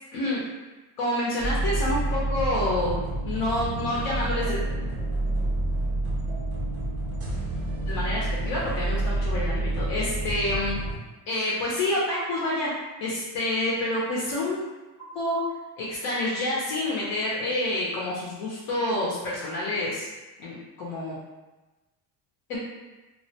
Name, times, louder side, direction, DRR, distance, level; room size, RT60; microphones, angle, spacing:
voice 1, 1.0-3.0 3.2-4.6 7.9-10.8 11.3-12.7 13.0-14.7 15.1-15.4 15.8-20.1 20.4-21.2 22.5-22.6, left 1 dB, 50° left, -5 dB, 0.6 m, -28 dB
sound 1, 1.4-11.0, right 2 dB, 30° right, 0.5 m, -28 dB
2.4 x 2.1 x 2.7 m, 1.1 s
cardioid pair, 150°, 46 cm